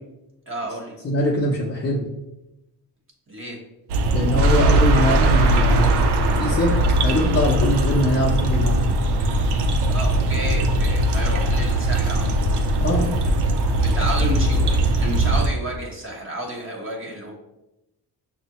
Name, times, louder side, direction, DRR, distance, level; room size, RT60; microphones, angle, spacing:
voice 1, 0.5-1.0 3.3-3.6 9.9-12.6 13.8-17.3, right 1 dB, 30° right, -1 dB, 1.0 m, -31 dB
voice 2, 1.0-2.0 4.1-6.1 6.4-8.9 12.8-13.1, left 1 dB, 35° left, -4 dB, 0.7 m, -22 dB
sound 1, 3.9-15.5, right 1 dB, 75° right, 0.6 m, -20 dB
5.9 x 2.1 x 2.8 m, 0.93 s
cardioid pair, 90°, 40 cm